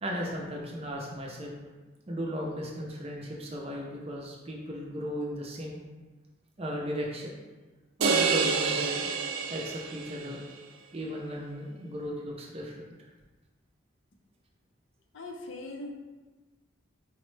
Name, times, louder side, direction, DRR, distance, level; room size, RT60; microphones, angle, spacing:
voice 1, 0.0-1.6 2.1-5.8 6.6-7.4 8.0-9.1 9.5-10.4 10.9-12.8, equal, 30° right, -1 dB, 0.5 m, -36 dB
sound 1, 8.0-10.4, right 5 dB, 85° right, 0.4 m, -28 dB
voice 2, 15.1-15.9, left 2 dB, 65° left, 2 dB, 0.5 m, -40 dB
4.3 x 2.0 x 3.1 m, 1.2 s
head